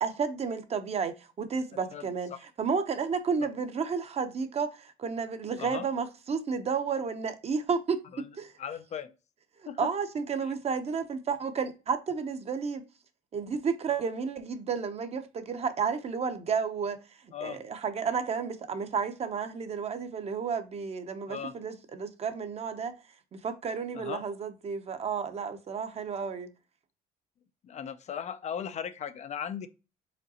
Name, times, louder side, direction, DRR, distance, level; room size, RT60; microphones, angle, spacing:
voice 1, 0.0-2.3 2.6-8.0 8.4-8.5 9.8-12.8 13.3-17.0 17.4-22.9 23.3-26.5, right 5 dB, 40° right, 0.7 m, -32 dB
voice 2, 1.9-2.4 3.4-3.5 5.6-5.9 8.1-8.3 8.6-9.1 9.7-9.9 10.4-10.5 17.3-17.6 21.3-21.6 23.9-24.2 27.6-29.7, left 8 dB, 40° left, 0.4 m, -38 dB
5.1 x 3.8 x 2.8 m
cardioid pair, 110°, 17 cm